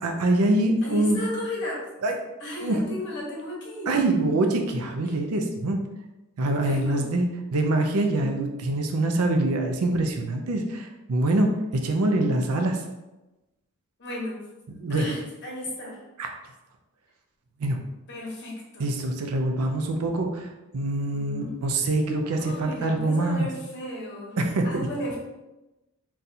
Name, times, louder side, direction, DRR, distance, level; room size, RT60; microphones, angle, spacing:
voice 1, 0.0-1.2 2.0-2.1 2.6-2.8 3.9-5.8 6.4-11.5 11.8-12.8 14.7-15.1 16.2-16.3 17.6-17.8 18.8-20.5 20.7-23.5 24.4-24.9, right 2 dB, 85° right, 4 dB, 0.5 m, -24 dB
voice 2, 0.8-1.8 2.4-4.0 5.0-5.1 6.6-7.0 14.0-14.4 14.9-16.0 18.1-18.8 21.1-21.7 22.4-24.4 24.6-25.2, left 1 dB, 55° left, -4 dB, 1.1 m, -34 dB
4.0 x 2.4 x 2.7 m, 1.0 s
head